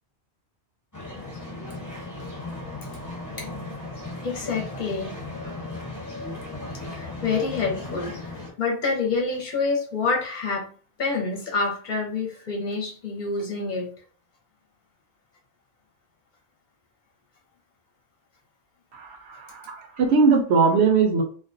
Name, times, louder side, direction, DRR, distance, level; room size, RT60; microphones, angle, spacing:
sound 1, 0.9-8.5, left 2 dB, 20° left, 0.9 m, -36 dB
voice 1, 4.2-5.2 6.9-8.1 8.6-10.7 11.0-13.9, left 4 dB, 55° left, -1 dB, 0.7 m, -27 dB
voice 2, 18.9-21.2, right 5 dB, 80° right, 3 dB, 0.9 m, -20 dB
2.4 x 2.1 x 2.5 m, 0.41 s
omnidirectional pair, 1.1 m